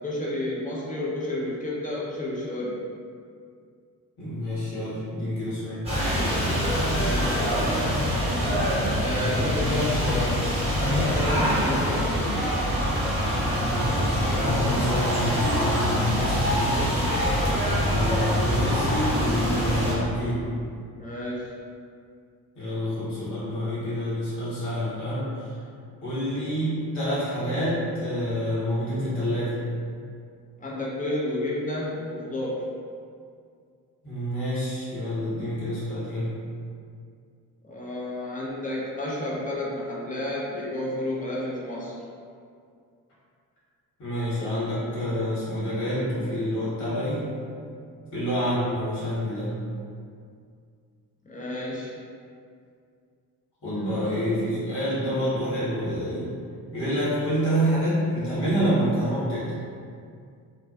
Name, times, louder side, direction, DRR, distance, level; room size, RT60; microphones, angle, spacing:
voice 1, 0.0-2.8 6.9-8.0 9.0-12.4 18.3-18.4 21.0-21.5 30.6-32.6 37.6-41.9 51.3-51.9 53.7-54.0, left 1 dB, 15° left, -6 dB, 0.7 m, -31 dB
voice 2, 4.2-5.9 13.5-17.0 17.9-20.5 22.5-25.6 26.0-29.6 34.0-36.3 44.0-47.3 48.1-49.5 53.6-56.3 56.7-59.5, equal, 60° left, -10 dB, 1.3 m, -28 dB
sound 1, 5.9-20.0, equal, 15° right, 1.1 m, -24 dB
2.3 x 2.3 x 2.4 m, 2.2 s
hypercardioid pair, 40°, 46 cm